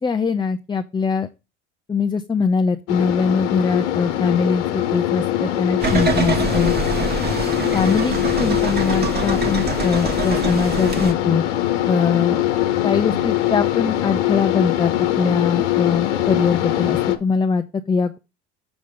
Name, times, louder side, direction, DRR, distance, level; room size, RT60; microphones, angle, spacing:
voice 1, 0.0-1.3 1.9-6.7 7.7-11.4 11.9-12.4 12.8-18.2, left 5 dB, 15° left, 8 dB, 0.5 m, -22 dB
sound 1, 2.9-17.2, left 13 dB, 85° left, 1.0 m, -22 dB
sound 2, 5.8-11.1, right 4 dB, 30° right, 1.4 m, -25 dB
7.1 x 3.6 x 6.4 m, 0.27 s
hypercardioid pair, 80°, 34 cm